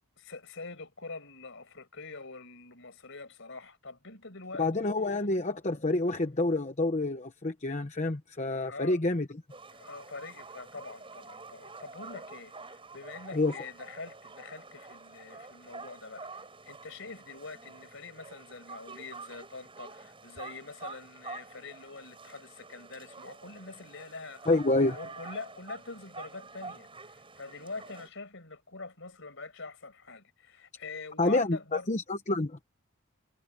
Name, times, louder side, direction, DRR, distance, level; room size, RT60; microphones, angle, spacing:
voice 1, 0.2-4.9 8.6-9.0 9.7-24.5 24.7-31.9, left 3 dB, 60° left, 5.2 m, -45 dB
voice 2, 4.6-9.3 13.3-13.5 24.5-25.0 31.2-32.6, left 2 dB, 35° left, 1.0 m, -28 dB
sound 1, 9.5-28.1, right 3 dB, 25° right, 6.7 m, -48 dB
head